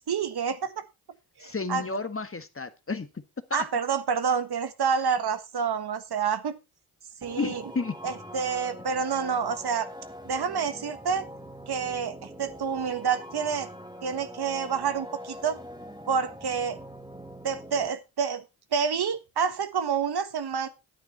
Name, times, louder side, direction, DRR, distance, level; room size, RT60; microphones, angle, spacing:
voice 1, 0.1-0.8 1.4-1.8 3.5-6.5 7.2-7.6 8.0-9.9 10.2-11.2 11.7-13.7 14.0-15.6 16.1-16.8 17.4-18.4 18.7-20.7, right 6 dB, 50° right, 11 dB, 1.4 m, -28 dB
voice 2, 1.4-3.1 3.5-3.6 7.4-7.9, left 4 dB, 25° left, 10 dB, 1.5 m, -31 dB
sound 1, 7.2-17.9, equal, 10° right, 2.1 m, -43 dB
10.5 x 9.2 x 4.1 m, 0.27 s
hypercardioid pair, 45°, 49 cm